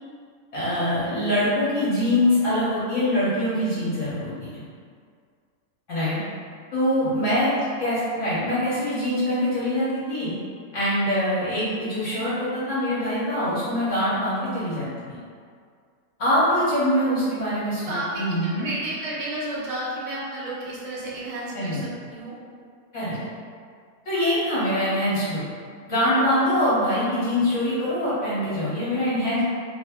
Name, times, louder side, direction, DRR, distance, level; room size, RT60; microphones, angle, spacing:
voice 1, 0.5-4.6 5.9-6.2 6.7-7.5 7.8-10.3 10.7-15.2 16.2-18.7 21.5-21.8 22.9-23.2 24.0-25.4 25.9-29.4, left 1 dB, 55° left, -11 dB, 1.2 m, -24 dB
voice 2, 17.8-22.4 23.1-23.3, right 1 dB, 70° right, -7 dB, 0.3 m, -32 dB
3.1 x 2.0 x 3.4 m, 2.1 s
omnidirectional pair, 1.7 m